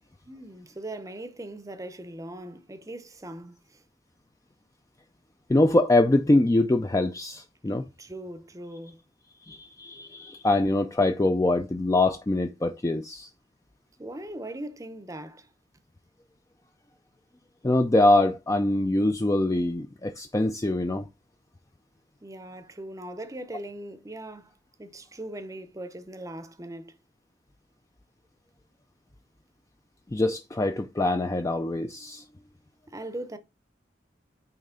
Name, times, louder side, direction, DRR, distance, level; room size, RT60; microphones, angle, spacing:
voice 1, 0.2-3.8 8.0-9.0 14.0-15.5 22.2-27.0 32.9-33.4, right 1 dB, 20° right, 0.7 m, -40 dB
voice 2, 5.5-7.9 9.5-13.3 17.6-21.1 30.1-32.2, left 2 dB, 20° left, 0.4 m, -24 dB
8.8 x 3.2 x 3.8 m
head